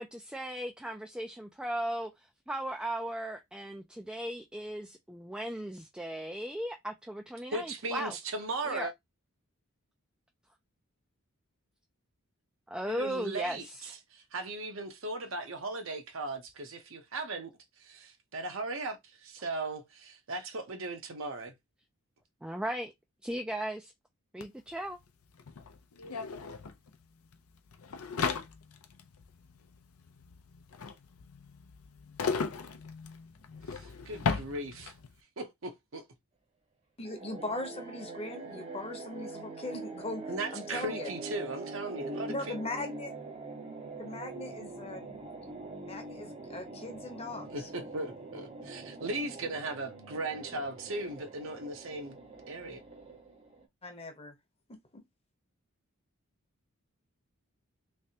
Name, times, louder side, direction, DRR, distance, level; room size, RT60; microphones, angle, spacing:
voice 1, 0.0-8.2 8.6-8.9 12.7-13.9 22.4-22.9 23.2-23.9 24.3-25.0, right 1 dB, 5° right, 0.3 m, -37 dB
voice 2, 7.5-8.9 12.9-17.5 17.8-21.5 33.7-34.9 35.4-36.0 40.3-42.5 47.5-52.2 52.5-52.8, right 2 dB, 65° right, 0.8 m, -37 dB
sound 1, 24.4-24.5 24.7-35.1, left 5 dB, 85° left, 0.6 m, -37 dB
voice 3, 37.0-40.2 40.5-41.1 42.3-43.1 44.0-45.0 45.8-47.7 53.8-54.3 54.7-55.0, left 2 dB, 25° left, 0.9 m, -39 dB
sound 2, 37.0-53.6, right 3 dB, 30° right, 0.9 m, -44 dB
3.3 x 3.2 x 2.8 m
head